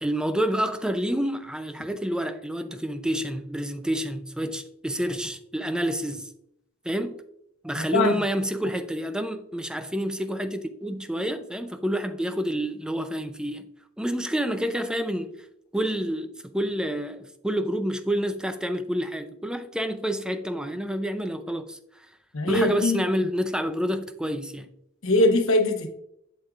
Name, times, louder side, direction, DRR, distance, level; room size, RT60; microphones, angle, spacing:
voice 1, 0.0-6.3 6.8-7.2 7.6-13.7 14.0-15.4 15.7-22.1 22.5-24.7, equal, 5° right, 0.5 m, -28 dB
voice 2, 7.8-8.2 22.3-23.0 25.0-25.9, left 2 dB, 70° left, 1.0 m, -22 dB
8.0 x 7.4 x 2.4 m
head